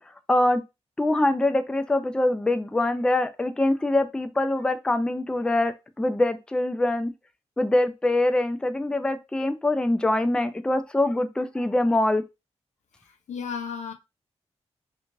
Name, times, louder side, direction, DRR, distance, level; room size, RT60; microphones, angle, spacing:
voice 1, 0.3-0.6 1.0-7.1 7.6-12.2, left 1 dB, 5° left, 0.3 m, -24 dB
voice 2, 13.0-13.9, left 6 dB, 80° left, 0.6 m, -34 dB
2.5 x 2.4 x 3.0 m
cardioid pair, 60°, 12 cm